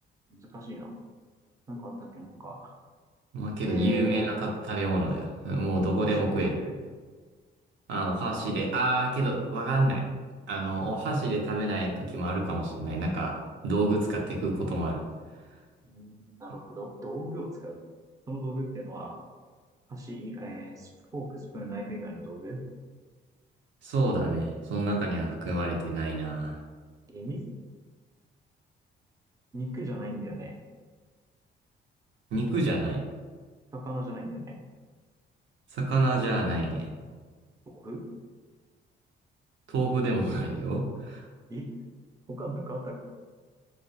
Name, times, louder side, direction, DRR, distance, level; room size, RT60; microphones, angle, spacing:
voice 1, 0.3-0.9 1.7-2.7 3.6-4.3 6.0-6.7 15.8-17.8 18.3-19.2 19.9-22.6 27.1-27.4 29.5-30.6 33.7-34.5 37.7-38.1 41.5-41.7 42.3-42.9, right 1 dB, 15° right, -1 dB, 0.4 m, -37 dB
voice 2, 3.3-6.6 7.9-10.1 10.5-13.4 13.6-15.0 23.8-26.6 32.3-33.0 35.7-36.9 39.7-41.2, right 2 dB, 70° right, -1 dB, 0.5 m, -28 dB
2.3 x 2.2 x 2.6 m, 1.5 s
cardioid pair, 90°, 20 cm